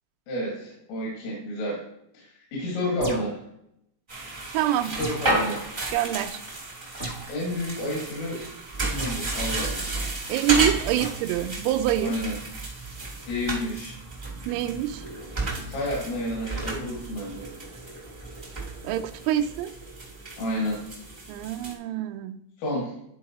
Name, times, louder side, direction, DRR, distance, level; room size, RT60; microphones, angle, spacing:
voice 1, 0.3-1.8 2.1-3.4 4.8-5.6 7.3-8.5 8.9-9.9 12.0-12.3 13.3-14.0 15.7-17.5 20.4-20.8 22.6-22.9, left 1 dB, 80° left, -3 dB, 4.5 m, -30 dB
sound 1, 3.0-3.4 5.0-5.4 7.0-7.3 9.0-9.2 11.0-11.2, right 2 dB, 60° left, 0.5 m, -35 dB
sound 2, 4.1-21.7, right 2 dB, 65° right, 0.5 m, -33 dB
voice 2, 4.5-4.9 5.9-6.4 10.3-12.2 14.5-15.0 18.8-19.7 21.3-22.4, right 11 dB, 85° right, 6 dB, 3.2 m, -26 dB
13.0 x 4.7 x 3.0 m, 0.76 s
omnidirectional pair, 5.7 m